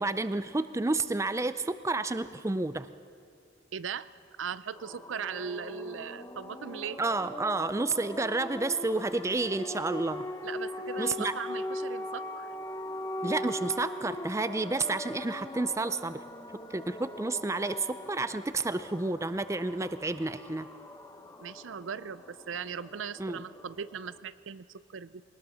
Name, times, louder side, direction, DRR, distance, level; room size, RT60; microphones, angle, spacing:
voice 1, 0.0-2.9 7.0-10.3 11.0-11.3 13.2-16.2 16.7-20.7 23.2-23.4, right 3 dB, 15° right, 13 dB, 0.4 m, -30 dB
voice 2, 3.7-4.1 4.4-7.0 10.4-12.5 21.4-25.2, right 7 dB, 75° right, 16 dB, 0.5 m, -39 dB
sound 1, 4.8-24.2, left 1 dB, 15° left, 0.9 m, -41 dB
21.5 x 19.0 x 6.3 m, 2.3 s
head